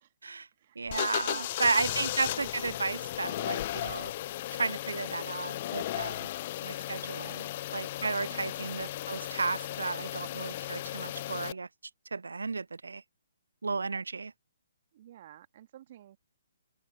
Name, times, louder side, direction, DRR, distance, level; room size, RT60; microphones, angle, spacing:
voice 1, 0.8-4.1 4.5-6.3 6.6-7.5 7.7-11.7 12.1-13.0 13.6-14.3, right 4 dB, 75° right, 0.3 m, -33 dB
sound 1, 0.9-11.5, left 14 dB, 40° left, 0.5 m, -35 dB
voice 2, 1.3-2.0 2.3-2.5 7.1-7.5 8.2-8.7 14.9-16.2, right 12 dB, 45° right, 1.9 m, -51 dB
open air
figure-of-eight pair, 135°, 0 cm